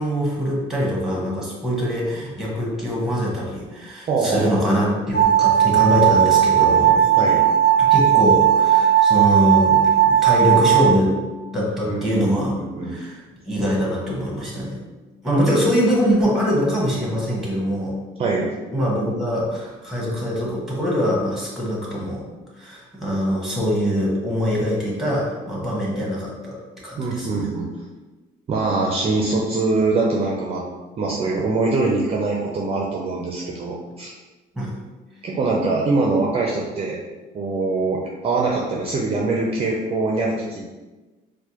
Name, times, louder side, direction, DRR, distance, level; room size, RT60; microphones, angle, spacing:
voice 1, 0.0-7.1 7.9-11.2 11.5-12.5 12.9-14.8 15.2-17.9 18.7-22.2 22.6-26.6 26.8-27.4 34.6-34.7, equal, ahead, -4 dB, 1.2 m, -23 dB
voice 2, 4.1-4.8 7.2-7.4 11.9-13.0 18.2-18.5 27.0-27.7 28.5-30.7 31.0-34.1 35.2-37.0 37.3-40.7, right 3 dB, 35° right, -2 dB, 0.5 m, -23 dB
sound 1, 5.1-10.9, right 10 dB, 55° left, 1.1 m, -16 dB
4.6 x 2.1 x 2.9 m, 1.2 s
cardioid pair, 110°, 17 cm